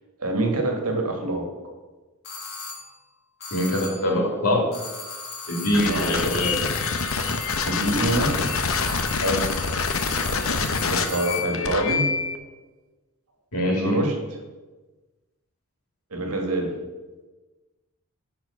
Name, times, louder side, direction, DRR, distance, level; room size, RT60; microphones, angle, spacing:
voice 1, 0.2-1.5 5.9-6.6 7.7-8.4 10.5-12.1 13.6-14.2 16.1-16.7, right 2 dB, 85° right, 2 dB, 1.7 m, -26 dB
sound 1, 2.2-3.0 3.4-4.2 4.7-11.6, left 3 dB, 45° left, 1.7 m, -35 dB
voice 2, 3.5-4.6 5.5-6.5 9.2-9.4 13.5-14.0, left 1 dB, 80° left, -1 dB, 2.6 m, -23 dB
sound 2, 5.7-12.4, left 5 dB, 65° left, 0.7 m, -26 dB
10.5 x 4.5 x 5.7 m, 1.2 s
head